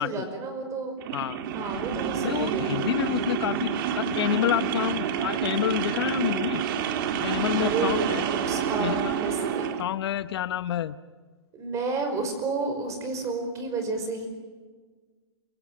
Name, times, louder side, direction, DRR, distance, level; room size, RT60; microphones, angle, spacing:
voice 1, 0.0-1.0 1.5-3.0 7.6-8.0 8.5-9.7 11.5-14.3, right 3 dB, 20° right, 7 dB, 5.4 m, -31 dB
sound 1, 1.0-9.8, right 8 dB, 50° right, 2.2 m, -28 dB
voice 2, 2.2-6.6 7.2-8.2 8.8-9.1 9.8-11.0, left 12 dB, 65° left, 14 dB, 0.9 m, -28 dB
28.0 x 24.5 x 7.7 m, 1.4 s
hypercardioid pair, 150°, 14 cm